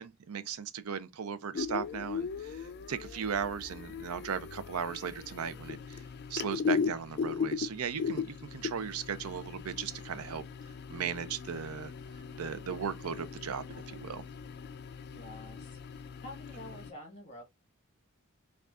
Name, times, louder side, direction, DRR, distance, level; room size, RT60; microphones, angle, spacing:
voice 1, 0.0-6.0 6.3-10.4 10.9-11.9 12.4-14.2, right 7 dB, 90° right, 0.5 m, -37 dB
sound 1, 1.5-16.9, left 6 dB, 50° left, 0.3 m, -38 dB
voice 2, 15.1-17.4, left 1 dB, 30° left, 1.6 m, -48 dB
4.7 x 2.4 x 2.4 m
head